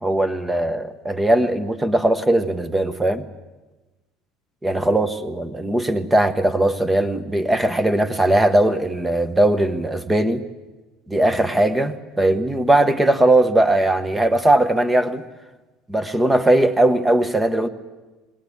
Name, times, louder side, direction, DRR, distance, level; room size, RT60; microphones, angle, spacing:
voice 1, 0.0-3.2 4.6-10.4 11.1-15.2 15.9-17.7, right 1 dB, 10° right, 9 dB, 1.0 m, -19 dB
21.0 x 18.5 x 8.5 m, 1.2 s
cardioid pair, 155°, 0 cm